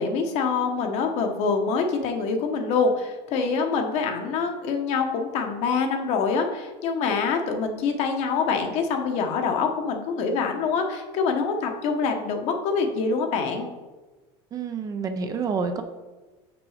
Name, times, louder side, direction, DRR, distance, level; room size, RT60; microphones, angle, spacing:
voice 1, 0.0-13.7, left 5 dB, 50° left, 4 dB, 1.0 m, -25 dB
voice 2, 14.5-15.8, right 5 dB, 25° right, 7 dB, 0.5 m, -28 dB
6.0 x 6.0 x 4.9 m, 1.3 s
supercardioid pair, 150°, 14 cm